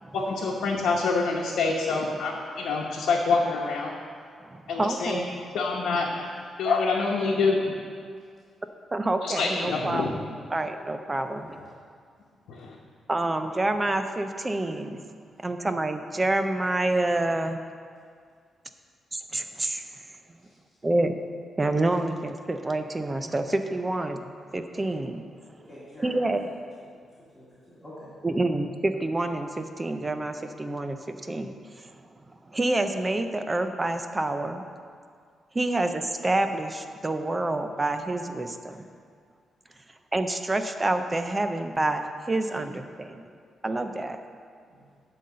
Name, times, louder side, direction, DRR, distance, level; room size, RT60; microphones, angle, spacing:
voice 1, 0.1-3.9 4.7-5.2 5.5-6.3 6.6-7.6 9.2-10.1 12.5-12.7, left 4 dB, 90° left, -4 dB, 1.0 m, -26 dB
voice 2, 4.4-5.3 8.9-10.1 10.5-11.6 13.1-15.1 15.4-17.6 19.1-19.8 20.8-21.1 21.6-25.2 26.0-26.5 28.2-31.5 32.5-34.6 35.5-38.8 40.1-43.2 43.6-44.2, right 2 dB, 15° right, 7 dB, 0.4 m, -27 dB
voice 3, 11.1-11.7 25.6-26.3 27.3-28.1 44.7-44.8, left 1 dB, 5° left, -12 dB, 2.1 m, -47 dB
10.5 x 4.0 x 7.5 m, 2.1 s
wide cardioid pair, 165°, 0 cm